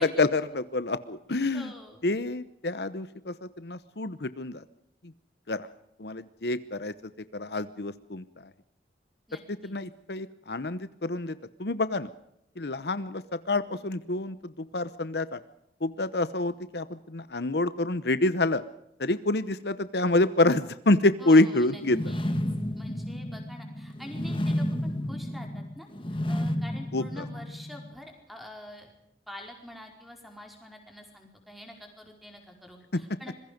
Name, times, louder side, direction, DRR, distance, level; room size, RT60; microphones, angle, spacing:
voice 1, 0.0-1.7 2.0-4.6 5.5-5.7 6.0-6.9 7.3-8.2 9.6-12.1 12.6-15.4 15.8-18.6 19.0-22.0 26.9-27.2 32.9-33.0, left 2 dB, 70° left, 14 dB, 0.9 m, -27 dB
voice 2, 1.5-2.0 9.3-9.8 21.2-22.4 22.7-25.9 26.3-28.9 29.3-33.3, equal, ahead, 2 dB, 4.8 m, -46 dB
sound 1, 21.8-27.9, left 1 dB, 30° left, 1.9 m, -31 dB
26.0 x 22.0 x 5.2 m, 0.79 s
head